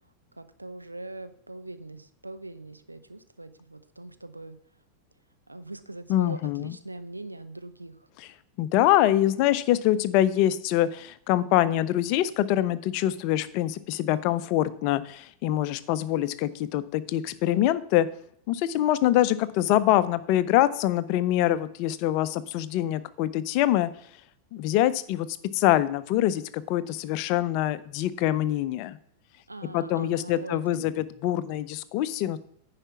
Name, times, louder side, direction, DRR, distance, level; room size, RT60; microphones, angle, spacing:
voice 1, 0.4-4.6 5.5-8.0 29.5-30.8, right 2 dB, 85° right, 10 dB, 0.7 m, -41 dB
voice 2, 6.1-6.8 8.2-8.3 8.6-18.1 18.5-23.9 24.5-25.3 25.5-29.0 29.7-32.4, left 13 dB, 45° left, 16 dB, 0.5 m, -24 dB
9.9 x 5.0 x 5.8 m, 0.67 s
figure-of-eight pair, 90°, 0 cm